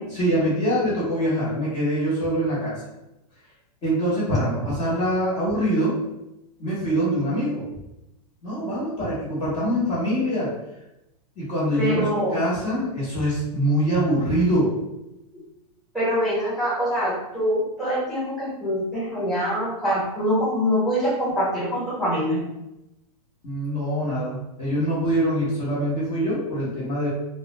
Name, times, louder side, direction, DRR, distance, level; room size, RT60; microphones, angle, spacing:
voice 1, 0.1-2.8 3.8-6.0 6.6-7.6 8.4-10.5 11.4-12.0 12.3-14.7 23.4-27.1, equal, 30° left, -9 dB, 0.9 m, -24 dB
voice 2, 11.8-12.4 15.9-22.4, equal, ahead, -12 dB, 1.0 m, -24 dB
2.3 x 2.1 x 2.9 m, 0.92 s
supercardioid pair, 160°, 20 cm